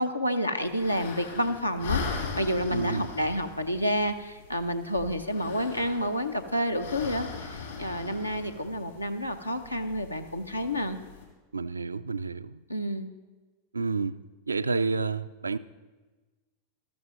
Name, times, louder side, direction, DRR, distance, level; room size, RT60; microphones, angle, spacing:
voice 1, 0.0-11.0 12.7-13.1, equal, 85° left, 0.7 m, -29 dB
sound 1, 0.6-11.2, left 5 dB, 65° left, 3.0 m, -39 dB
voice 2, 2.7-3.1 11.5-12.6 13.7-14.2 14.5-15.6, right 4 dB, 75° right, 0.3 m, -29 dB
13.5 x 12.5 x 3.1 m
figure-of-eight pair, 90°, 0 cm